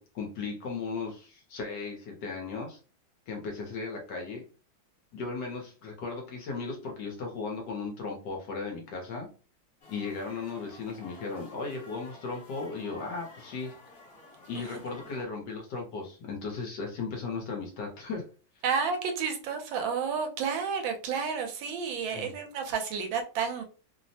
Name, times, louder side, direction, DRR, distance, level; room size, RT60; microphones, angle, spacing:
voice 1, 0.0-2.8 3.3-4.4 5.1-9.3 9.9-13.8 14.5-18.2 22.1-22.3, left 4 dB, 65° left, 1 dB, 1.2 m, -36 dB
sound 1, 9.8-15.3, left 2 dB, 40° left, 1.1 m, -52 dB
voice 2, 18.6-23.6, right 6 dB, 80° right, 4 dB, 1.3 m, -31 dB
3.3 x 2.0 x 2.6 m, 0.36 s
omnidirectional pair, 2.2 m